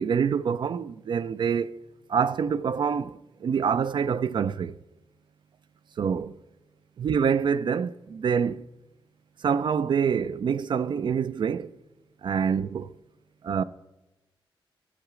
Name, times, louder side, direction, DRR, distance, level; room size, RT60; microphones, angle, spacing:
voice 1, 0.0-1.8 2.1-4.8 6.0-6.4 7.0-8.7 9.4-11.7 12.2-12.9 13.4-13.6, right 7 dB, 60° right, 0.4 m, -26 dB
11.0 x 7.9 x 4.9 m
cardioid pair, 95°, 9 cm